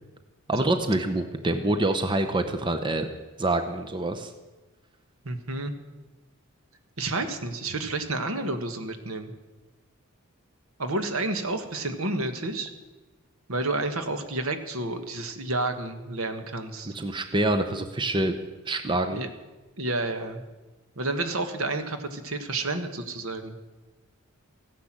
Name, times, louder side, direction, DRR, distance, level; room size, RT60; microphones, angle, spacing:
voice 1, 0.5-3.1 3.4-4.3 16.9-18.3 18.7-19.2, right 2 dB, 20° right, 7 dB, 0.8 m, -26 dB
voice 2, 5.2-5.7 7.0-9.3 10.8-12.7 13.5-16.9 18.9-19.3 19.8-20.4 21.0-23.6, right 2 dB, 75° right, 8 dB, 1.5 m, -30 dB
15.5 x 10.0 x 7.5 m, 1.2 s
head